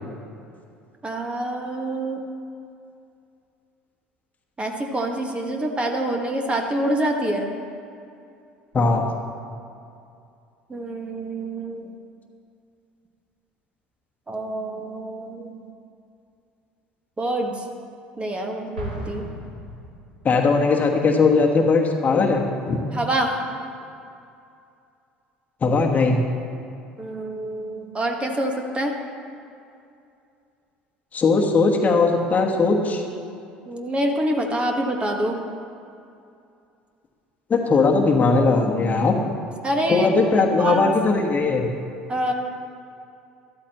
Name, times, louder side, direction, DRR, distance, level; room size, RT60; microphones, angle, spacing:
voice 1, 1.0-2.2 4.6-7.5 10.7-11.9 14.3-15.6 17.2-17.5 18.2-19.2 22.9-23.3 27.0-28.9 33.7-35.4 39.6-40.1 40.3-40.9 42.1-42.3, right 1 dB, 20° right, 2 dB, 1.6 m, -26 dB
Explosion, 18.8-20.5, right 1 dB, 85° right, 1.9 m, -35 dB
voice 2, 20.2-22.8 25.6-26.2 31.1-33.0 37.5-39.2 39.9-41.7, left 4 dB, 35° left, 1 dB, 1.3 m, -19 dB
13.0 x 13.0 x 3.0 m, 2.5 s
hypercardioid pair, 65°, 5 cm